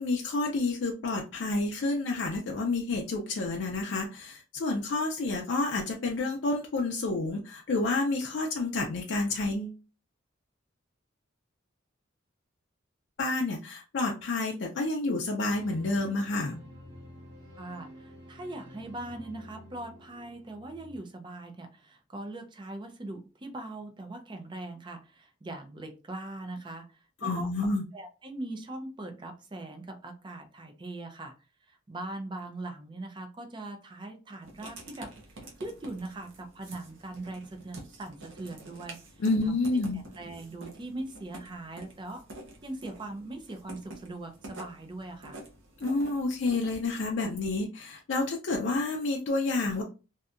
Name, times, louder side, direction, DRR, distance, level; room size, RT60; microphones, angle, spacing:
voice 1, 0.0-9.8 13.2-16.6 27.2-27.8 39.2-40.0 45.8-49.8, left 3 dB, 65° left, 0 dB, 0.4 m, -29 dB
sound 1, 15.4-21.0, equal, 55° right, 1.2 m, -50 dB
voice 2, 17.6-31.3 31.7-35.1 35.6-42.2 42.6-45.4, right 2 dB, 25° right, 5 dB, 0.4 m, -41 dB
Writing, 34.4-46.9, right 2 dB, 75° right, 0.7 m, -48 dB
2.7 x 2.2 x 2.4 m, 0.32 s
head